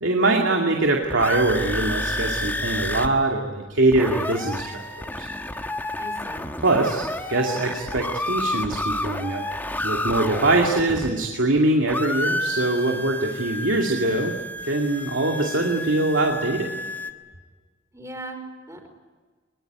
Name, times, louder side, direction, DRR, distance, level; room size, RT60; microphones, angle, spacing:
voice 1, 0.0-5.3 6.6-9.4 9.8-14.3 14.7-16.7, right 2 dB, 90° right, 1 dB, 2.5 m, -23 dB
sound 1, 0.8-3.1 3.4-3.5 3.7-11.6 11.9-17.1, left 1 dB, 10° left, 1.4 m, -30 dB
voice 2, 6.0-6.4 17.9-18.9, right 2 dB, 15° right, 5 dB, 4.8 m, -38 dB
23.5 x 22.0 x 9.4 m, 1.4 s
head